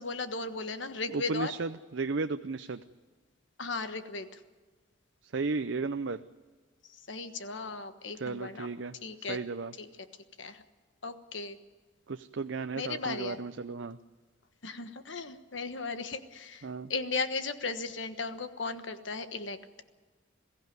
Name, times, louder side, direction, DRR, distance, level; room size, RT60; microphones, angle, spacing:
voice 1, 0.0-1.5 3.6-4.4 7.1-8.7 9.0-9.4 9.8-9.9 10.4-10.6 11.0-11.6 12.7-13.4 14.6-19.6, left 4 dB, 75° left, 9 dB, 1.3 m, -36 dB
voice 2, 1.1-2.8 5.2-6.2 8.2-8.9 9.3-9.7 12.1-14.0 16.6-16.9, right 4 dB, 75° right, 9 dB, 0.6 m, -34 dB
22.0 x 15.0 x 9.4 m, 1.4 s
head